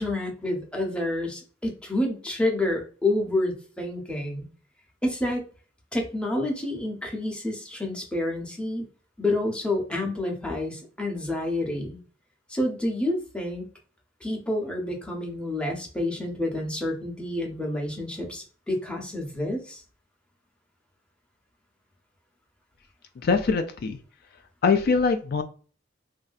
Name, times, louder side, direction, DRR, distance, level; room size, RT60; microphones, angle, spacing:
voice 1, 0.0-4.5 5.0-5.4 5.9-8.9 9.2-12.0 12.5-13.7 14.2-19.8, left 1 dB, 5° left, 0 dB, 0.7 m, -28 dB
voice 2, 23.2-24.0 24.6-25.4, left 4 dB, 50° left, 6 dB, 0.3 m, -22 dB
3.1 x 2.6 x 2.3 m, 0.39 s
head